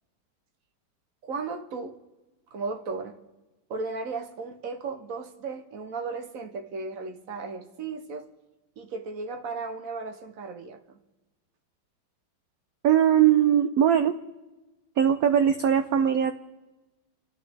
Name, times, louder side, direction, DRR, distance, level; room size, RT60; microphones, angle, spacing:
voice 1, 1.2-2.0 2.5-3.2 3.7-8.3 8.8-11.0, right 4 dB, 55° right, 1.0 m, -35 dB
voice 2, 12.8-14.2 15.0-16.3, right 9 dB, 75° right, 0.8 m, -20 dB
27.5 x 12.0 x 3.5 m
omnidirectional pair, 2.2 m